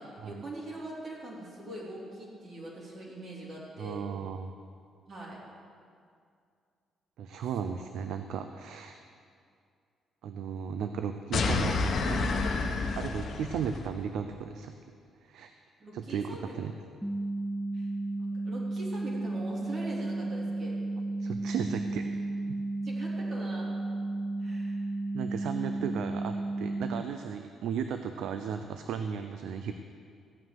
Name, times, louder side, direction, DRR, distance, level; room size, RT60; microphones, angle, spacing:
voice 1, 0.0-4.1 5.1-5.4 7.6-7.8 15.8-16.5 17.7-17.9 18.2-20.8 22.8-23.7 24.4-24.8, right 1 dB, 50° right, -5 dB, 3.6 m, -42 dB
voice 2, 3.8-4.5 7.2-9.0 10.2-12.3 12.9-14.7 15.2-15.5 15.9-16.7 21.2-22.0 22.5-22.6 24.4-24.5 25.1-29.7, right 7 dB, 80° right, 8 dB, 0.6 m, -35 dB
sound 1, 11.3-13.9, left 3 dB, 60° left, 1.3 m, -29 dB
sound 2, 17.0-27.0, right 2 dB, 5° right, 0.4 m, -33 dB
15.0 x 5.8 x 9.2 m, 2.3 s
cardioid pair, 90°, 0 cm